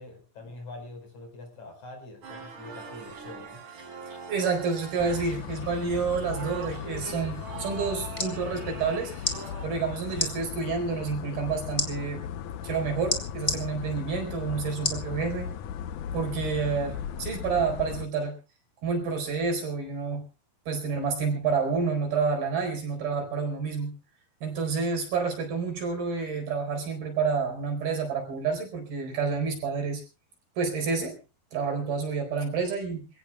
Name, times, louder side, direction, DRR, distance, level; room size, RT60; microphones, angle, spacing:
voice 1, 0.0-3.6, left 2 dB, 50° left, 5 dB, 5.9 m, -44 dB
sound 1, 2.2-9.7, right 4 dB, 55° right, 5.7 m, -42 dB
voice 2, 4.3-9.1 9.6-12.2 12.6-15.5 16.1-18.4 18.8-20.3 20.7-24.0 24.4-30.0 30.6-31.2 31.5-33.1, right 5 dB, 70° right, 3 dB, 6.3 m, -29 dB
sound 2, 5.0-18.1, left 9 dB, 70° left, 1.9 m, -37 dB
sound 3, 8.1-8.3 9.2-9.4 10.1-10.3 11.8-11.9 13.1-13.6 14.8-15.1 15.6-15.7, left 2 dB, 15° left, 1.8 m, -28 dB
27.0 x 17.0 x 2.3 m, 0.32 s
omnidirectional pair, 4.5 m